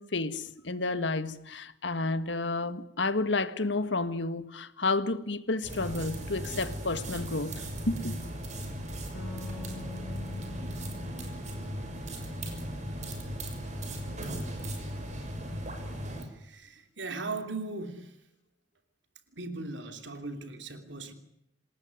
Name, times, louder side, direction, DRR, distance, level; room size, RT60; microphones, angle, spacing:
voice 1, 0.0-8.2, left 3 dB, 75° left, 12 dB, 1.8 m, -31 dB
sound 1, 5.6-16.2, equal, 40° right, 6.3 m, -37 dB
sound 2, 9.1-12.7, left 3 dB, 50° left, 6.1 m, -46 dB
voice 2, 16.2-18.2 19.3-21.1, right 3 dB, 75° right, 7 dB, 3.1 m, -38 dB
27.5 x 19.5 x 9.6 m, 0.79 s
head